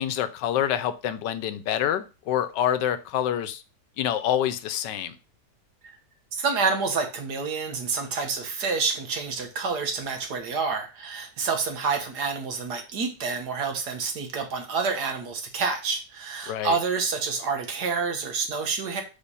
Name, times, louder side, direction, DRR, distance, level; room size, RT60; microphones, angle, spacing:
voice 1, 0.0-3.6 4.0-5.2 16.5-16.8, left 10 dB, 85° left, 12 dB, 1.3 m, -27 dB
voice 2, 6.4-19.0, right 4 dB, 70° right, 5 dB, 1.8 m, -28 dB
5.4 x 4.5 x 5.5 m, 0.31 s
omnidirectional pair, 1.9 m